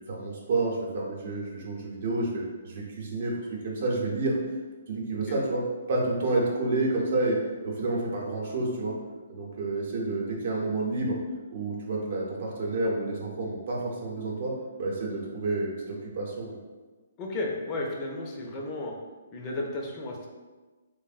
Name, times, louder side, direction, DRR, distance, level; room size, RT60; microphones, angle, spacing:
voice 1, 0.1-4.3 4.9-5.6 5.9-9.0 9.3-11.2 11.5-14.5 14.8-16.5, right 2 dB, 55° right, -2 dB, 0.7 m, -29 dB
voice 2, 17.2-18.9 19.3-20.3, left 2 dB, 30° left, -1 dB, 0.4 m, -33 dB
3.3 x 2.0 x 2.4 m, 1.3 s
hypercardioid pair, 140°, 0 cm